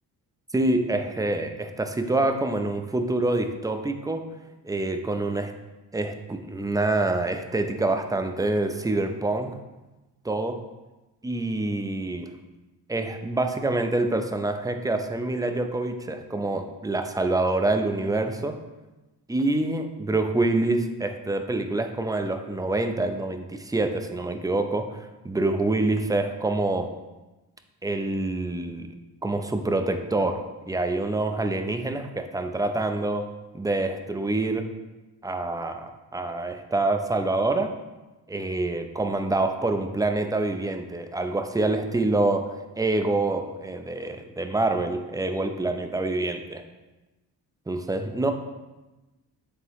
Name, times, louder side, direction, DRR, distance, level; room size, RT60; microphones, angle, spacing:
voice 1, 0.5-4.3 4.6-5.5 5.9-9.6 10.2-10.6 11.2-12.3 12.9-18.6 19.3-26.9 27.8-28.9 29.2-33.3 33.5-34.7 35.2-37.7 38.3-46.6 47.7-48.3, right 2 dB, 10° right, 6 dB, 0.5 m, -26 dB
9.5 x 3.8 x 3.0 m, 1.1 s
cardioid pair, 85°, 40 cm